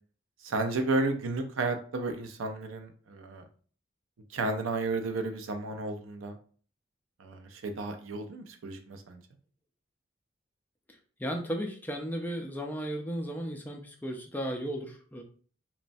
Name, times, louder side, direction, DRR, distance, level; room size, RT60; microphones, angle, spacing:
voice 1, 0.4-3.4 4.3-6.4 7.2-9.2, right 3 dB, 90° right, 7 dB, 0.5 m, -32 dB
voice 2, 11.2-15.2, equal, 10° left, 3 dB, 0.3 m, -35 dB
3.0 x 2.1 x 2.5 m, 0.43 s
head